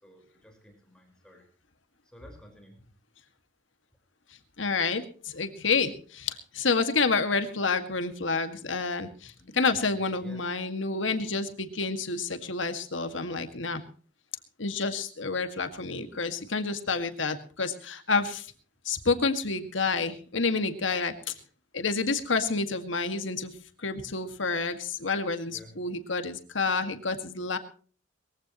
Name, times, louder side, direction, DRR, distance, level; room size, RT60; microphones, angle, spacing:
voice 1, 0.0-1.5 2.0-2.9 9.4-10.5 25.5-25.8, equal, 5° left, 2 dB, 4.7 m, -52 dB
voice 2, 4.6-13.8 14.6-18.5 18.9-21.3 21.7-23.5 23.8-27.6, left 4 dB, 85° left, 8 dB, 1.9 m, -29 dB
22.0 x 15.5 x 3.0 m, 0.41 s
head